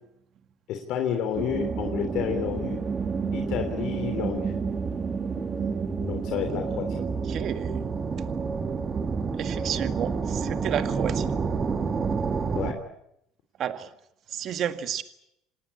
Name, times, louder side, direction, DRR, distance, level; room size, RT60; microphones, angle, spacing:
voice 1, 0.7-2.8 3.3-4.5 6.0-7.0 12.5-12.8, left 8 dB, 65° left, 4 dB, 3.3 m, -30 dB
sound 1, 1.3-12.7, right 5 dB, 30° right, 2.2 m, -29 dB
voice 2, 7.0-7.8 9.4-11.3 13.6-13.9 14.3-15.0, right 9 dB, 50° right, 9 dB, 1.8 m, -31 dB
27.0 x 19.0 x 8.5 m, 0.79 s
cardioid pair, 125°, 0 cm